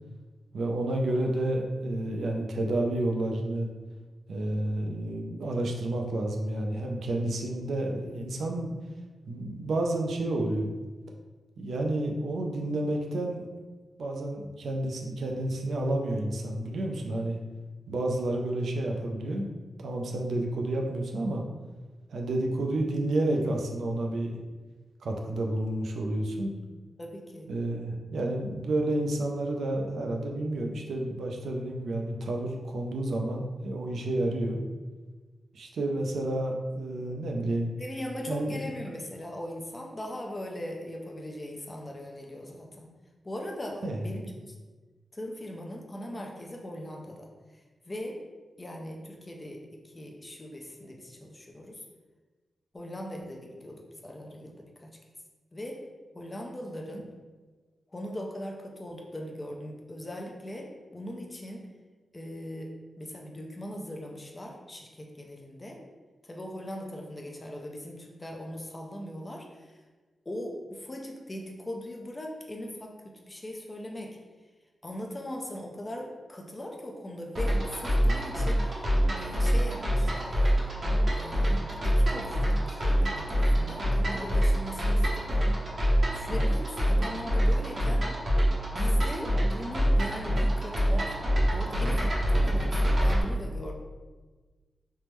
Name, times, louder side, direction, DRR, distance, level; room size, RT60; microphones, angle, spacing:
voice 1, 0.5-3.7 4.3-8.7 9.3-10.7 11.6-13.5 14.0-17.4 17.9-19.5 19.8-21.4 22.1-24.4 25.0-26.5 27.5-34.6 35.5-37.7 38.3-38.6 43.8-44.0, right 1 dB, 85° right, 1 dB, 0.4 m, -30 dB
voice 2, 27.0-27.5 37.8-42.9 43.2-44.5 45.1-48.2 48.6-51.8 52.7-55.0 55.5-55.8 56.1-57.0 57.9-61.7 62.1-65.8 66.2-69.8 70.3-74.2 74.8-78.8 79.2-80.7 81.2-85.4 86.1-88.0 88.7-91.2 91.5-93.7, left 1 dB, 20° left, 1 dB, 0.4 m, -40 dB
sound 1, 77.4-93.2, equal, 40° right, 0.6 m, -25 dB
3.4 x 2.0 x 3.0 m, 1.3 s
wide cardioid pair, 160°, 0 cm